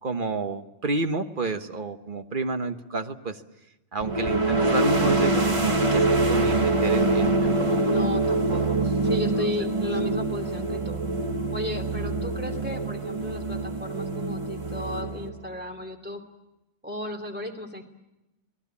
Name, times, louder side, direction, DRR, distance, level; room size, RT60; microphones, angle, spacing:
voice 1, 0.0-3.4 3.9-7.7 8.5-8.6, right 3 dB, 45° right, 8 dB, 1.3 m, -30 dB
sound 1, 4.0-15.6, right 2 dB, 25° right, 1.3 m, -25 dB
voice 2, 7.8-11.0 11.5-16.2 16.8-17.9, left 1 dB, 10° right, 3 dB, 2.8 m, -34 dB
28.0 x 19.5 x 8.4 m, 0.96 s
omnidirectional pair, 1.2 m